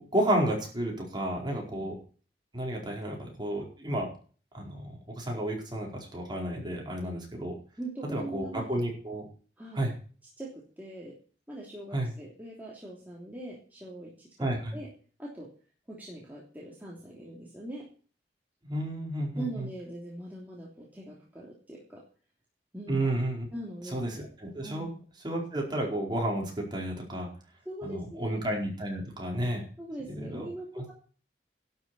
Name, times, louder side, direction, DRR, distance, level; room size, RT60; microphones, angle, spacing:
voice 1, 0.0-2.0 2.5-4.1 4.5-7.6 8.1-9.2 9.7-9.9 11.9-12.1 14.4-14.8 18.6-19.7 22.9-23.5 23.9-24.9 25.2-27.3 27.8-29.6 30.1-30.5 30.7-30.8, right 1 dB, 25° right, 0 dB, 4.6 m, -31 dB
voice 2, 7.8-8.8 9.6-9.9 10.4-11.1 11.5-14.9 15.2-15.5 15.9-17.9 19.4-22.0 22.7-23.0 23.5-24.0 24.6-24.9 27.6-28.4 29.8-30.9, right 1 dB, 10° right, -5 dB, 3.1 m, -41 dB
12.0 x 7.2 x 8.6 m, 0.41 s
head